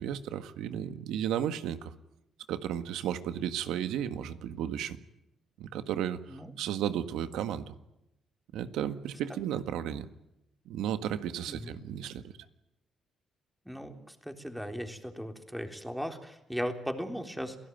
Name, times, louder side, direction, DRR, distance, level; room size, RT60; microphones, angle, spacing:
voice 1, 0.0-1.9 2.5-5.0 5.6-7.7 8.5-10.1 10.7-12.3, right 10 dB, 90° right, 10 dB, 1.7 m, -34 dB
voice 2, 13.7-17.6, equal, ahead, 5 dB, 3.7 m, -37 dB
28.0 x 17.5 x 9.4 m, 0.88 s
cardioid pair, 90°, 0 cm